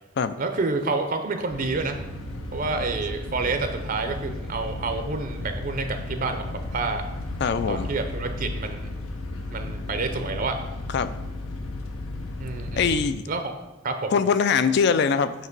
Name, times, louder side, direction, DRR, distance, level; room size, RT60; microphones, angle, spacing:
voice 1, 0.4-2.0 2.5-7.0 7.7-8.9 9.5-10.6 12.4-13.0 13.3-13.5 13.8-14.1, right 3 dB, 40° right, 6 dB, 0.5 m, -28 dB
sound 1, 1.5-13.1, left 2 dB, 80° left, 0.8 m, -34 dB
voice 2, 7.4-7.9 10.9-11.1 12.8-13.2 14.1-15.3, left 6 dB, 55° left, 12 dB, 0.4 m, -22 dB
8.1 x 2.9 x 5.9 m, 1.0 s
head